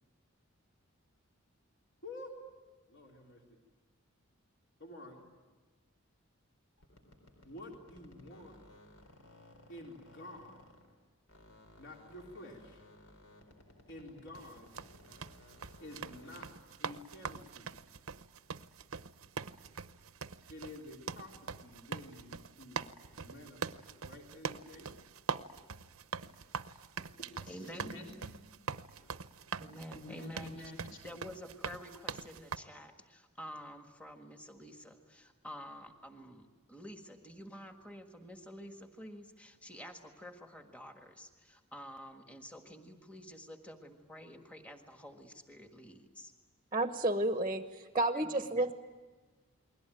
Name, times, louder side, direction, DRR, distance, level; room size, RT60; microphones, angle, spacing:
voice 1, 2.0-2.4 2.9-3.6 4.8-5.3 7.4-8.6 9.7-10.6 11.8-12.9 13.9-14.8 15.8-16.5 16.8-17.7 20.5-22.8 23.2-25.0 27.2-28.3 28.9-29.2 29.9-30.8, left 1 dB, 55° left, 0 dB, 3.6 m, -50 dB
sound 1, 6.8-11.0 11.3-16.7, left 1 dB, 75° left, 4.1 m, -59 dB
sound 2, 14.3-32.6, right 5 dB, 75° right, 0.8 m, -43 dB
voice 2, 27.5-28.0 29.6-30.5 31.0-46.3 48.1-48.7, equal, 5° left, 4 dB, 1.6 m, -49 dB
voice 3, 46.7-47.6 47.9-48.7, right 2 dB, 20° right, 8 dB, 1.0 m, -30 dB
29.5 x 21.5 x 9.1 m, 1.3 s
head